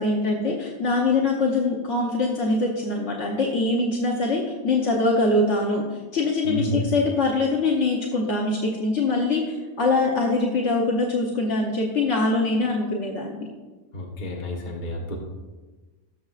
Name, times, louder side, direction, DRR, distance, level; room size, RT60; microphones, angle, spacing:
voice 1, 0.0-13.5, left 2 dB, 75° left, -1 dB, 1.3 m, -23 dB
voice 2, 6.4-6.8 13.9-15.2, equal, 45° left, -2 dB, 1.4 m, -30 dB
17.0 x 7.1 x 2.4 m, 1.3 s
omnidirectional pair, 1.2 m